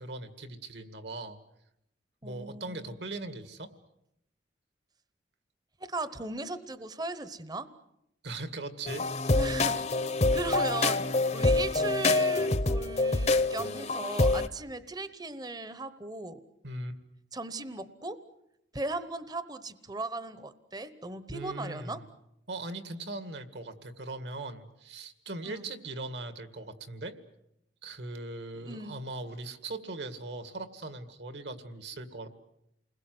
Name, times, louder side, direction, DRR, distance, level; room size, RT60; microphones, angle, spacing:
voice 1, 0.0-1.4 2.2-3.7 8.2-9.4 16.6-17.0 21.3-22.0 22.5-27.2 27.8-32.3, right 2 dB, 65° right, 9 dB, 2.1 m, -40 dB
voice 2, 2.2-3.0 5.8-7.7 9.3-10.0 10.3-16.4 17.3-18.2 18.7-22.0 25.4-25.7 28.5-29.0, right 2 dB, 20° right, 12 dB, 1.0 m, -37 dB
sound 1, 8.9-14.5, left 2 dB, 35° left, 0.9 m, -26 dB
29.5 x 21.0 x 7.8 m, 0.81 s
head